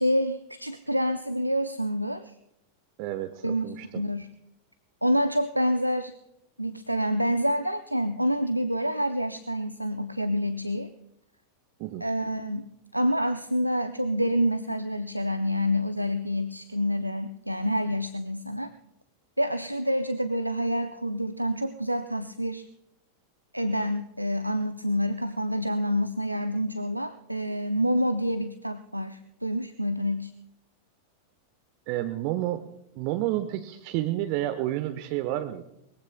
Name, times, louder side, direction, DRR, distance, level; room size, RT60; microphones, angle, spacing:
voice 1, 0.0-2.3 3.4-4.3 5.0-6.1 6.6-10.9 12.0-18.7 19.4-22.7 23.5-30.3, equal, 90° right, 9 dB, 0.6 m, -27 dB
voice 2, 3.0-4.0 11.8-12.1 31.9-32.6 33.0-35.6, right 14 dB, 45° right, 9 dB, 0.9 m, -30 dB
22.5 x 21.5 x 2.3 m, 0.83 s
figure-of-eight pair, 90°, 0 cm